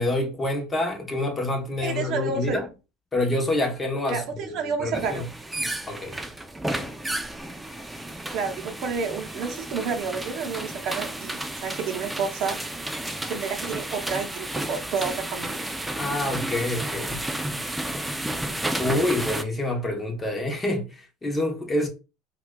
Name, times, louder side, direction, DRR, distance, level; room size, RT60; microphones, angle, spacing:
voice 1, 0.0-2.7 3.1-5.3 5.9-6.2 16.0-17.2 18.8-21.9, left 1 dB, 20° left, 0.9 m, -27 dB
voice 2, 1.8-2.6 4.1-5.2 8.3-12.6 13.2-15.6, right 5 dB, 55° right, 0.7 m, -30 dB
sound 1, 4.9-19.4, right 1 dB, 10° right, 0.4 m, -32 dB
4.4 x 2.3 x 2.2 m
supercardioid pair, 115°, 0 cm